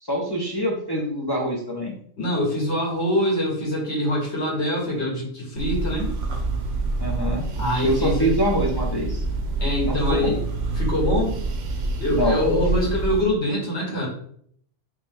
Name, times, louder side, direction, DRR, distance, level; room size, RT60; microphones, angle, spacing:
voice 1, 0.0-1.9 7.0-7.5 7.8-9.2 9.8-10.4 12.1-12.6, equal, 35° left, -1 dB, 0.4 m, -25 dB
voice 2, 2.2-6.1 7.5-8.3 9.6-10.4 10.7-11.3 12.0-14.1, left 1 dB, 65° left, -3 dB, 1.5 m, -24 dB
sound 1, 5.6-13.2, right 2 dB, 80° right, 0.9 m, -27 dB
3.1 x 3.0 x 3.4 m, 0.63 s
omnidirectional pair, 1.2 m